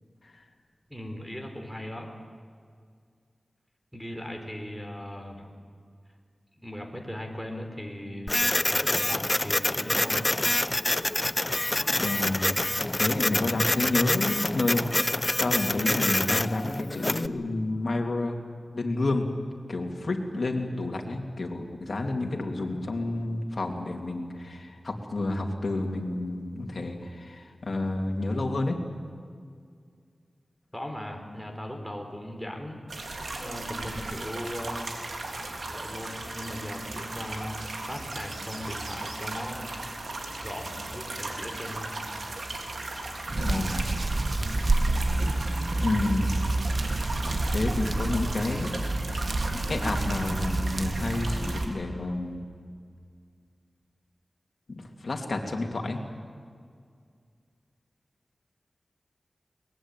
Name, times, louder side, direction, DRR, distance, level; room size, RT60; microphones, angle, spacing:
voice 1, 0.9-2.1 3.9-5.6 6.6-10.3 30.7-32.9 33.3-34.8 35.7-39.7 40.4-41.9, left 1 dB, ahead, 2 dB, 4.1 m, -38 dB
Printer, 8.3-17.3, left 1 dB, 25° left, 0.6 m, -26 dB
voice 2, 12.0-12.6 12.9-14.8 15.4-18.4 18.7-19.3 19.7-28.8 43.4-43.9 45.8-46.4 47.5-48.7 49.5-52.4 54.7-56.0, left 2 dB, 60° left, 2 dB, 2.9 m, -30 dB
sound 1, 32.9-51.7, right 2 dB, 80° right, 3.3 m, -37 dB
Hands, 43.3-51.7, right 2 dB, 45° right, 1.4 m, -28 dB
22.5 x 20.5 x 9.1 m, 2.1 s
wide cardioid pair, 65°, 0 cm